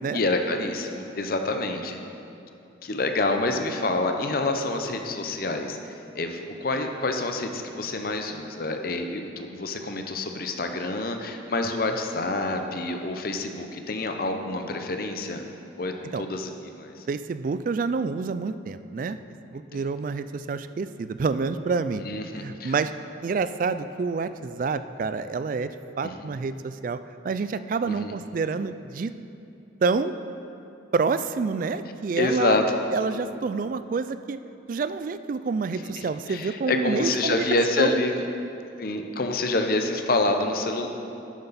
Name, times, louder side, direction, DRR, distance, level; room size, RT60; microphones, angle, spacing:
voice 1, 0.1-2.0 2.8-5.8 6.1-15.4 15.8-17.0 22.0-22.7 26.0-26.1 27.8-28.1 32.2-32.8 36.0-38.2 38.8-40.9, left 2 dB, 55° left, 5 dB, 0.7 m, -27 dB
voice 2, 17.1-19.2 19.5-22.0 22.4-22.9 23.2-25.7 26.0-27.0 27.2-29.1 29.8-30.1 30.9-32.6 32.9-34.4 34.7-37.5 37.8-37.9, right 4 dB, 45° right, 12 dB, 0.3 m, -28 dB
11.0 x 7.8 x 4.1 m, 2.7 s
head